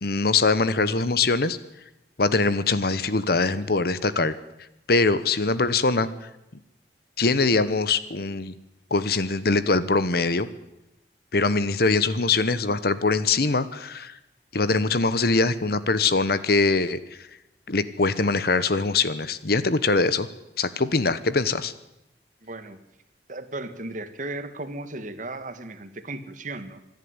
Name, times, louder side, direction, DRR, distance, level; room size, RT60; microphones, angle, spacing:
voice 1, 0.0-1.6 2.2-4.3 4.9-6.1 7.2-8.5 8.9-10.5 11.3-14.1 14.5-17.0 17.7-20.3 20.6-21.7, left 3 dB, 60° left, 14 dB, 1.1 m, -22 dB
voice 2, 22.4-22.8 23.3-26.8, right 2 dB, 45° right, 11 dB, 1.6 m, -35 dB
26.0 x 11.0 x 9.7 m, 0.90 s
head